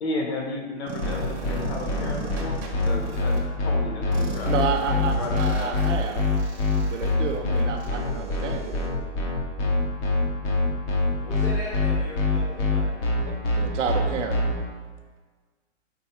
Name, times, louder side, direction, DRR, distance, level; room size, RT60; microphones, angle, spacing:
voice 1, 0.0-5.8 13.3-13.4, left 2 dB, 60° left, 2 dB, 1.3 m, -34 dB
sound 1, 0.9-3.4 4.1-8.9, right 3 dB, 35° right, 1.1 m, -38 dB
sound 2, 1.0-14.5, left 3 dB, 25° left, 0.8 m, -24 dB
voice 2, 4.4-6.3 6.8-8.8 13.5-14.4, right 6 dB, 80° right, 5 dB, 0.9 m, -30 dB
voice 3, 11.2-12.8, left 1 dB, 10° left, -7 dB, 0.4 m, -37 dB
5.3 x 4.3 x 4.5 m, 1.4 s
hypercardioid pair, 160°, 36 cm